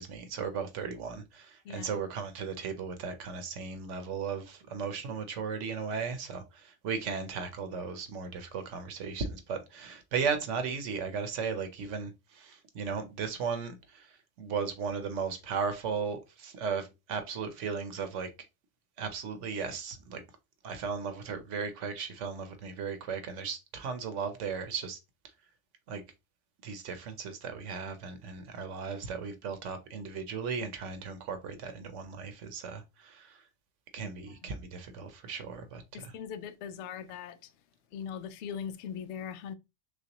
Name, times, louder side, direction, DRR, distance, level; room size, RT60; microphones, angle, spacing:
voice 1, 0.0-18.3 19.0-20.2 20.6-25.0 25.9-26.0 26.6-33.4 33.9-36.1, right 5 dB, 65° right, 1.1 m, -36 dB
voice 2, 35.9-37.4 37.9-39.5, left 8 dB, 65° left, 0.7 m, -40 dB
6.3 x 2.3 x 2.9 m
omnidirectional pair, 1.4 m